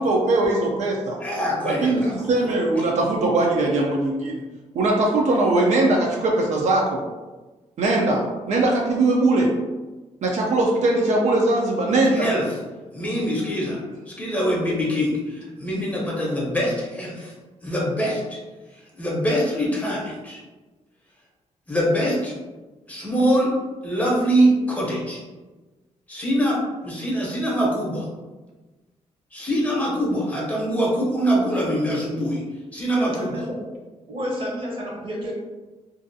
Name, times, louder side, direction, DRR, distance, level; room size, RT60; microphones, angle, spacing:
voice 1, 0.0-1.2 1.6-4.4 4.7-7.0 7.8-9.5 10.2-12.3, right 2 dB, 65° right, -1 dB, 0.4 m, -20 dB
voice 2, 1.2-2.1 12.0-12.4 12.9-13.8 14.1-17.3 17.6-18.4 18.9-20.4 21.7-22.3 22.9-23.5 23.8-25.2 26.1-28.1 29.3-32.4 32.7-33.3, equal, 10° left, -4 dB, 0.7 m, -23 dB
voice 3, 33.0-33.6 34.1-35.3, equal, 45° right, -3 dB, 0.8 m, -30 dB
2.5 x 2.3 x 2.6 m, 1.2 s
cardioid pair, 135°, 13 cm